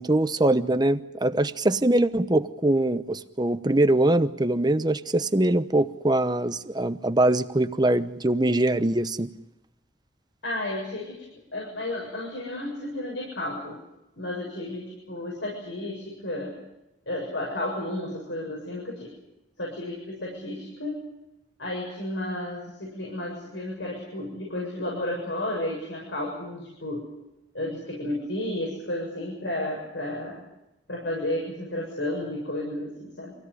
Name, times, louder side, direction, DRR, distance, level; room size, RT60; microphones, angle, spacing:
voice 1, 0.0-9.3, right 1 dB, 25° right, 11 dB, 0.9 m, -23 dB
voice 2, 10.4-11.3 11.5-13.8 14.2-16.6 17.1-19.1 19.6-21.0 21.6-27.1 27.5-30.4 30.9-33.4, left 1 dB, 85° left, -2 dB, 7.4 m, -32 dB
25.5 x 17.0 x 9.9 m, 0.93 s
head